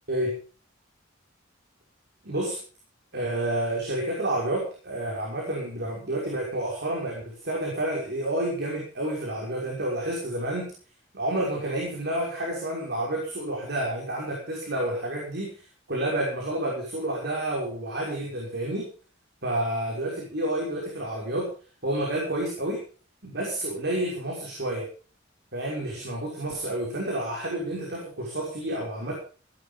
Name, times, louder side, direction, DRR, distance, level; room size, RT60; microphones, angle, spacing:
voice 1, 0.1-0.4 2.2-2.6 3.1-10.7 11.1-15.5 15.9-18.9 19.4-21.5 21.8-22.8 23.2-24.9 25.5-29.1, right 1 dB, 55° right, -2 dB, 5.9 m, -29 dB
17.5 x 12.0 x 5.3 m, 0.38 s
head